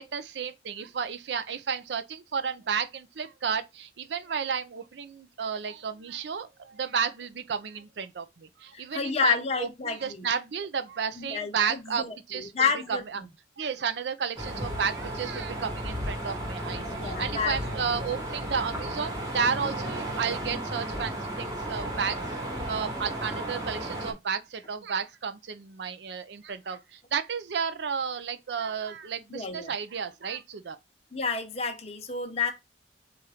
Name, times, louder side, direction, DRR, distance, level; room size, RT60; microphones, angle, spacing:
voice 1, 0.0-9.7 10.0-12.0 12.3-13.0 13.6-22.2 22.7-30.8, right 6 dB, 70° right, 0.5 m, -32 dB
voice 2, 8.7-10.3 11.2-13.3 16.9-17.8 29.3-29.7 31.1-32.5, left 5 dB, 35° left, 0.9 m, -30 dB
sound 1, 14.4-24.1, right 1 dB, 20° right, 1.3 m, -34 dB
4.3 x 2.5 x 4.8 m
head